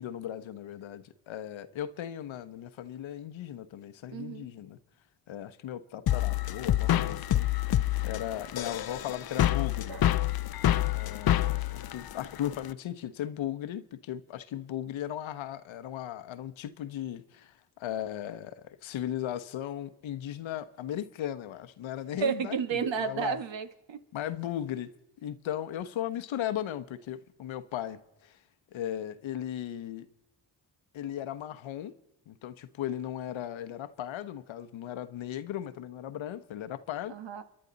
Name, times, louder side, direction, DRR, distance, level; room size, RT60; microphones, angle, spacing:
voice 1, 0.0-4.8 5.3-7.5 8.0-10.2 10.9-23.4 24.1-24.9 25.2-28.4 28.7-30.1 30.9-31.9 32.3-37.1, left 11 dB, 70° left, 1.0 m, -37 dB
voice 2, 4.1-4.5 9.9-10.0 22.2-24.0 37.1-37.4, right 6 dB, 60° right, 1.6 m, -32 dB
sound 1, 6.1-12.7, left 13 dB, 50° left, 0.7 m, -27 dB
30.0 x 11.0 x 4.0 m
supercardioid pair, 55°, 49 cm